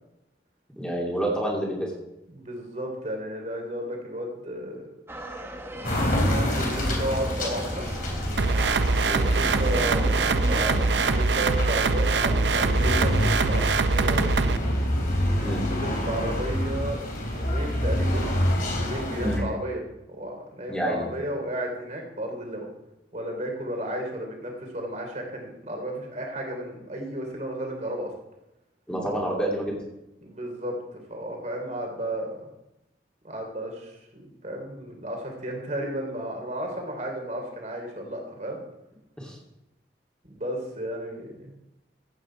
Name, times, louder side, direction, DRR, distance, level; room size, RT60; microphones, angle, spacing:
voice 1, 0.8-1.9 9.0-9.3 15.4-15.6 19.2-19.4 20.7-21.0 28.9-29.8 39.2-39.4, right 1 dB, 5° left, -3 dB, 3.0 m, -28 dB
voice 2, 2.3-4.8 5.6-5.7 6.2-7.9 9.1-14.6 15.7-18.3 18.7-19.8 20.1-22.7 23.1-28.1 30.2-30.7 31.1-32.4 33.2-38.6 40.2-41.5, right 1 dB, 45° right, 2 dB, 3.4 m, -33 dB
sound 1, 5.1-11.2, right 1 dB, 15° right, 1.2 m, -36 dB
sound 2, 5.8-19.4, left 1 dB, 50° left, 3.4 m, -28 dB
sound 3, 8.4-14.6, right 3 dB, 85° right, 0.7 m, -23 dB
15.0 x 8.9 x 4.6 m, 0.92 s
head